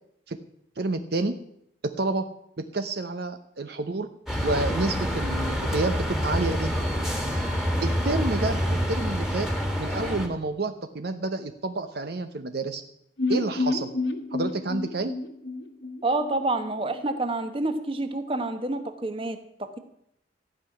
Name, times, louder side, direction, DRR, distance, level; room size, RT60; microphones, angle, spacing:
voice 1, 0.8-1.3 1.8-2.3 2.6-4.1 4.4-6.7 7.8-9.5 9.8-12.8 13.3-13.9 14.3-15.1, right 2 dB, 60° right, 8 dB, 0.9 m, -29 dB
sound 1, 4.3-10.3, equal, ahead, 1.9 m, -27 dB
sound 2, 13.2-17.1 17.3-17.4 17.7-17.8, left 3 dB, 70° left, 1.5 m, -30 dB
voice 2, 16.0-19.8, right 2 dB, 30° right, 8 dB, 1.2 m, -28 dB
15.0 x 5.8 x 9.8 m, 0.74 s
head